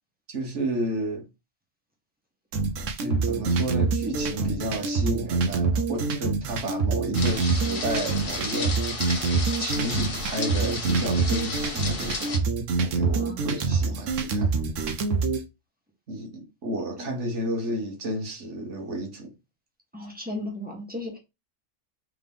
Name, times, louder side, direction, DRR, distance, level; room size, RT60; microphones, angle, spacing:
voice 1, 0.3-1.2 3.0-9.2 9.6-12.3 12.8-14.5 16.1-19.3, right 1 dB, 70° right, 1.6 m, -32 dB
sound 1, 2.5-15.4, right 4 dB, 90° right, 1.1 m, -25 dB
sound 2, 7.1-12.4, left 3 dB, 50° left, 1.3 m, -33 dB
voice 2, 13.1-13.9 17.0-17.1 19.9-21.2, left 1 dB, 10° right, 1.2 m, -36 dB
3.7 x 3.6 x 3.5 m
omnidirectional pair, 1.3 m